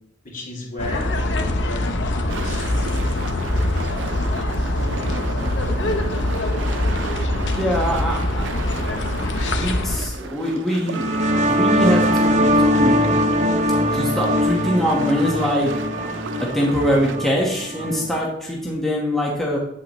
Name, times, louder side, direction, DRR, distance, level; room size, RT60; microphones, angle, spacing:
voice 1, 0.2-2.7, left 1 dB, 45° left, -2 dB, 2.6 m, -34 dB
sound 1, 0.8-10.0, left 1 dB, 75° left, 0.9 m, -23 dB
sound 2, 2.3-17.2, right 4 dB, 85° right, 0.6 m, -34 dB
voice 2, 7.5-8.5 9.2-13.1 13.9-15.7 16.4-19.6, equal, ahead, -3 dB, 1.2 m, -23 dB
sound 3, 10.9-18.2, equal, 40° right, 0.9 m, -21 dB
8.5 x 8.1 x 3.1 m, 0.78 s
head